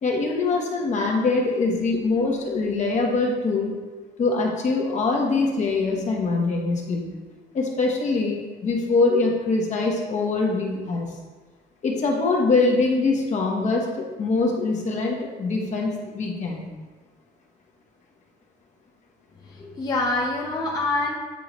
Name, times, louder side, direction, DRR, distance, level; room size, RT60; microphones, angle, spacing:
voice 1, 0.0-3.7 4.2-7.1 7.5-11.1 11.8-16.7, left 3 dB, 45° left, -1 dB, 1.2 m, -23 dB
voice 2, 19.4-21.1, left 2 dB, 20° left, -3 dB, 0.7 m, -26 dB
8.3 x 3.9 x 3.1 m, 1.3 s
cardioid pair, 110°, 17 cm